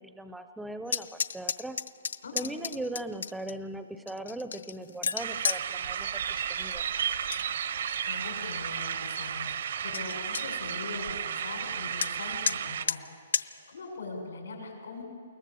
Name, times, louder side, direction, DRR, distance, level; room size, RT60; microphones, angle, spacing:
voice 1, 0.0-1.8 2.3-6.8, right 1 dB, ahead, 9 dB, 0.4 m, -39 dB
sound 1, 0.9-3.5 4.1-5.6 7.0-7.4 7.8-8.3 8.8-8.9 9.2-9.3 9.6-9.7 9.9-10.4 12.0-12.1 12.5-12.6 12.9-13.0 13.3-13.5, left 6 dB, 70° left, 0.5 m, -32 dB
voice 2, 2.2-2.5 8.1-13.0 13.4-15.0, left 3 dB, 90° left, 1 dB, 6.6 m, -41 dB
sound 2, 5.2-12.8, right 8 dB, 45° right, 0.6 m, -33 dB
21.5 x 19.0 x 6.8 m, 2.1 s
hypercardioid pair, 180°, 0 cm